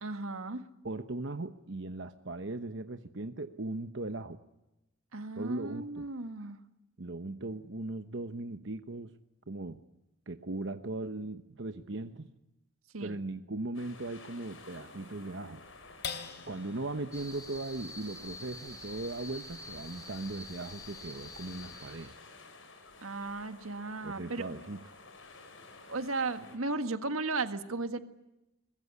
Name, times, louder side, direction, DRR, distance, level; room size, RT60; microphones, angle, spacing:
voice 1, 0.0-0.7 5.1-6.6 12.9-13.2 23.0-24.5 25.9-28.0, right 3 dB, 85° right, 9 dB, 1.7 m, -35 dB
voice 2, 0.8-4.4 5.3-6.1 6.4-6.5 7.0-9.1 9.5-9.8 10.3-12.3 13.0-15.7 16.5-22.2 24.0-24.8, right 2 dB, 60° right, 9 dB, 1.0 m, -38 dB
sound 1, 13.7-26.6, left 3 dB, 70° left, 5.5 m, -53 dB
sound 2, 16.0-22.7 23.2-23.3 23.7-24.2, left 6 dB, 50° left, 3.3 m, -48 dB
sound 3, 17.1-22.1, left 2 dB, 15° left, 2.1 m, -47 dB
23.5 x 21.5 x 9.7 m, 0.94 s
head